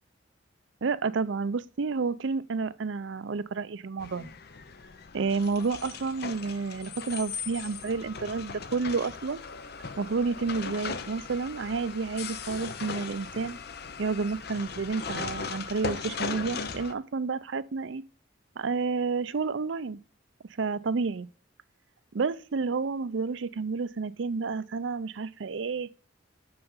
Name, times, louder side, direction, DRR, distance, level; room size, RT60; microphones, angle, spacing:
voice 1, 0.8-4.3 5.1-9.4 10.0-13.6 14.0-18.0 18.6-20.0 20.6-21.3 22.1-25.9, right 4 dB, 75° right, 0.5 m, -30 dB
sound 1, 4.0-16.9, left 5 dB, 55° left, 0.7 m, -38 dB
6.8 x 5.7 x 5.5 m
head